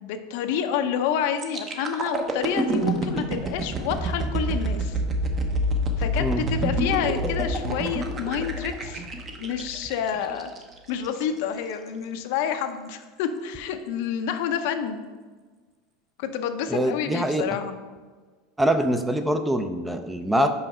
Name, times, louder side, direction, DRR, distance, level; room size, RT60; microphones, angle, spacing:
voice 1, 0.0-5.0 6.0-9.0 9.4-10.5 10.9-15.1 16.2-17.8, left 8 dB, 70° left, 7 dB, 0.7 m, -28 dB
sound 1, 1.4-11.2 11.7-11.9, right 1 dB, 30° right, 0.9 m, -27 dB
voice 2, 16.7-17.6 18.6-20.5, right 1 dB, 5° right, 8 dB, 0.5 m, -24 dB
5.6 x 5.2 x 5.5 m, 1.4 s
supercardioid pair, 130°, 0 cm